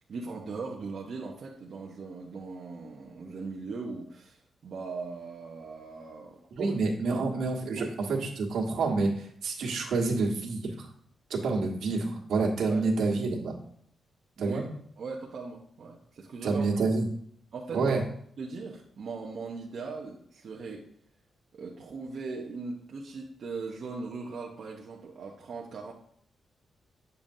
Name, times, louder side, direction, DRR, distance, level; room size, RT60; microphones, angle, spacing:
voice 1, 0.1-6.8 7.1-7.4 7.7-7.9 12.7-13.1 14.4-14.6 15.0-16.9 17.5-18.0 18.4-20.9 21.5-25.9, right 4 dB, 55° right, -2 dB, 0.8 m, -39 dB
voice 2, 6.5-10.9 11.3-13.5 14.4-14.7 16.4-17.0 17.7-18.0, right 3 dB, 90° right, -1 dB, 1.5 m, -28 dB
8.7 x 6.9 x 2.7 m, 0.65 s
wide cardioid pair, 145°, 0 cm